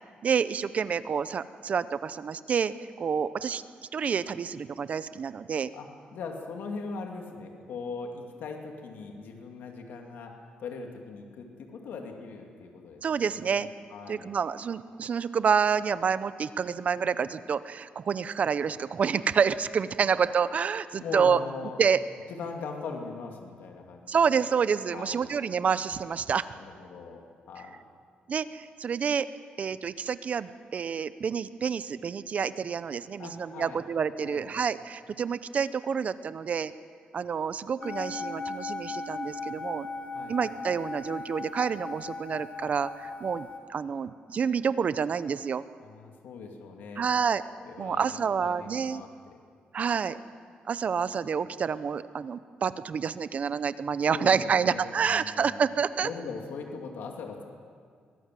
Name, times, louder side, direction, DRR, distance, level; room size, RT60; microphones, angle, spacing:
voice 1, 0.2-3.6 3.9-5.7 13.0-13.7 14.1-21.4 21.8-22.0 24.1-26.5 28.3-29.3 29.6-36.7 37.1-39.9 40.3-45.6 47.0-47.4 47.8-49.0 49.7-50.2 50.7-56.1, right 6 dB, 45° right, 14 dB, 0.7 m, -28 dB
voice 2, 5.7-10.3 10.6-13.0 13.3-14.3 20.0-20.1 21.0-21.8 22.3-24.5 24.9-25.3 26.6-27.7 33.2-33.8 34.2-34.5 40.1-40.4 45.8-47.1 47.6-49.4 54.1-55.6 56.0-57.4, left 4 dB, 80° left, 2 dB, 2.6 m, -40 dB
sound 1, 37.8-43.6, left 3 dB, 55° left, 2.7 m, -38 dB
23.5 x 17.5 x 7.7 m, 2.1 s
cardioid pair, 125°, 3 cm